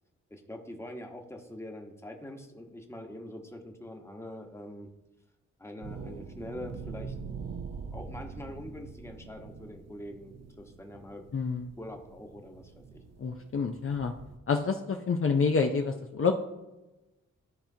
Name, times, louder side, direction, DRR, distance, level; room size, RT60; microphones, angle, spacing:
voice 1, 0.3-4.9 5.6-7.1 7.9-11.2 11.8-13.0, left 1 dB, 10° left, 2 dB, 1.2 m, -44 dB
sound 1, 5.8-14.4, right 5 dB, 55° right, 0.7 m, -44 dB
voice 2, 11.3-11.7 13.2-14.1 14.5-16.3, left 5 dB, 45° left, 3 dB, 0.6 m, -28 dB
12.5 x 4.3 x 2.8 m, 1.0 s
cardioid pair, 70°, 31 cm